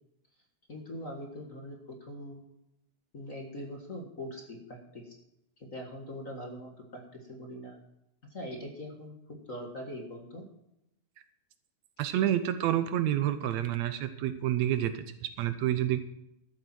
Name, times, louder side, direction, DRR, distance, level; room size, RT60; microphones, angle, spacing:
voice 1, 0.7-2.4 3.1-5.2 5.6-7.8 8.3-10.4, equal, 35° left, 1 dB, 1.6 m, -42 dB
voice 2, 12.0-16.0, right 12 dB, 75° right, 10 dB, 2.0 m, -29 dB
13.0 x 8.3 x 6.0 m, 0.83 s
omnidirectional pair, 3.3 m